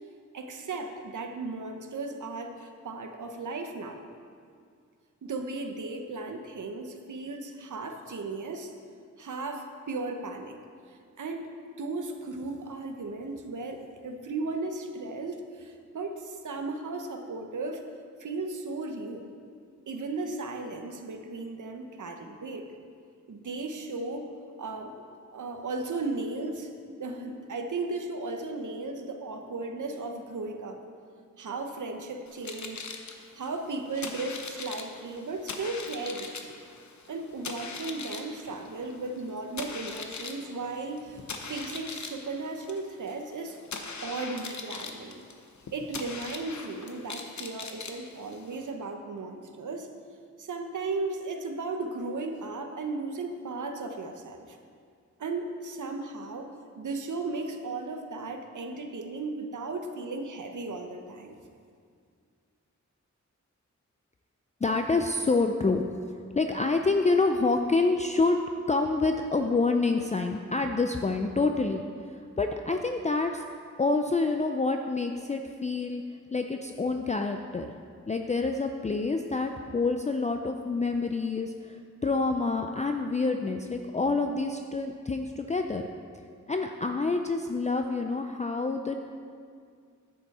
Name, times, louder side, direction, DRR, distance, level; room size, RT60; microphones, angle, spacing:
voice 1, 0.3-4.0 5.2-8.7 9.2-10.6 10.9-17.8 18.2-19.3 19.9-22.7 23.3-24.3 24.6-25.0 25.3-30.8 31.4-33.0 33.3-36.6 37.1-43.6 44.0-45.2 45.7-49.9 50.4-54.6 55.2-56.5 56.8-61.4, right 3 dB, 80° right, 5 dB, 0.9 m, -36 dB
sound 1, 32.3-48.7, left 4 dB, 70° left, 0.9 m, -41 dB
voice 2, 64.6-65.8 66.3-68.4 68.7-71.9 72.4-73.4 73.8-76.0 76.3-77.7 78.1-81.8 82.0-85.8 86.5-89.0, left 3 dB, 25° left, 4 dB, 0.4 m, -27 dB
10.5 x 8.7 x 4.2 m, 2.2 s
wide cardioid pair, 100°, 30 cm